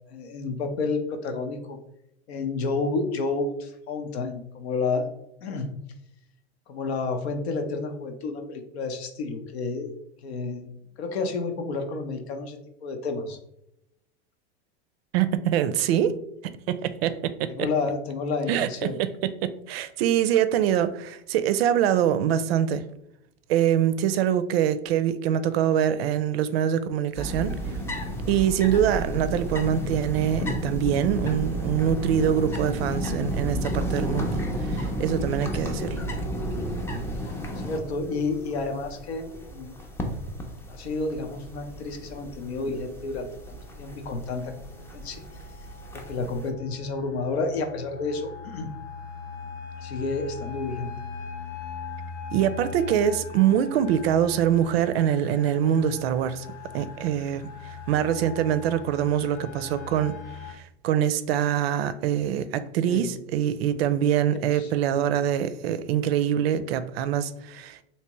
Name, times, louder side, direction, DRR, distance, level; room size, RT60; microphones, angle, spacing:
voice 1, 0.1-1.8 2.3-5.1 5.4-5.7 6.7-9.9 10.2-10.7 11.0-13.4 17.5-19.0 37.6-39.7 40.7-44.5 44.9-45.2 45.9-48.7 49.8-50.9 62.8-63.1 64.5-64.7, left 3 dB, 80° left, 0.8 m, -30 dB
voice 2, 15.1-16.2 16.4-17.5 18.5-18.7 19.4-22.8 23.5-27.5 28.3-36.0 52.3-56.5 56.7-57.4 57.9-60.1 60.5-67.8, right 9 dB, 70° right, 0.5 m, -24 dB
sound 1, 27.1-46.5, right 1 dB, 10° left, 0.4 m, -32 dB
sound 2, 43.4-60.5, left 5 dB, 40° left, 0.8 m, -41 dB
3.4 x 2.9 x 2.9 m
hypercardioid pair, 115°, 32 cm